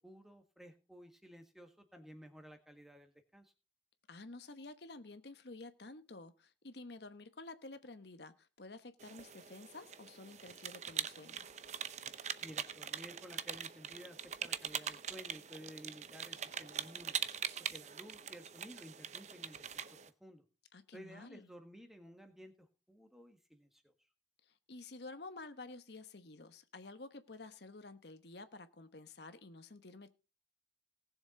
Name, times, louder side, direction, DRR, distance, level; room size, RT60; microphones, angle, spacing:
voice 1, 0.0-3.5 12.4-17.2 17.7-19.9 20.2-20.4 20.9-23.9, equal, ahead, 1.6 m, -54 dB
voice 2, 4.1-11.5 20.7-21.5 24.4-30.1, left 3 dB, 65° left, 1.1 m, -51 dB
sound 1, 9.0-20.1, right 8 dB, 40° right, 0.7 m, -43 dB
19.0 x 7.1 x 3.8 m
head